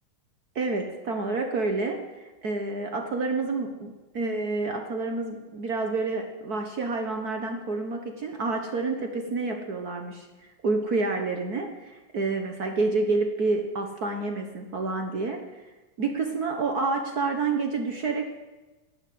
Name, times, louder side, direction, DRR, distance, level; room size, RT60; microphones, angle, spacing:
voice 1, 0.5-15.4 16.0-18.2, right 3 dB, 80° right, 4 dB, 0.8 m, -29 dB
12.0 x 10.5 x 9.3 m, 1.2 s
omnidirectional pair, 3.7 m